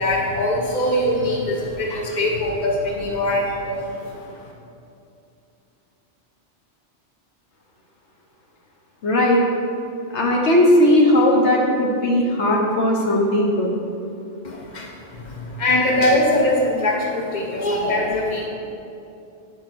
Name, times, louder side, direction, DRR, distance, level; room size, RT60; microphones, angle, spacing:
voice 1, 0.0-4.5 14.4-18.5, left 1 dB, 40° left, -2 dB, 1.3 m, -22 dB
voice 2, 9.0-9.4 10.1-13.7, left 1 dB, 70° left, -1 dB, 1.4 m, -17 dB
9.5 x 5.2 x 6.2 m, 2.6 s
omnidirectional pair, 1.2 m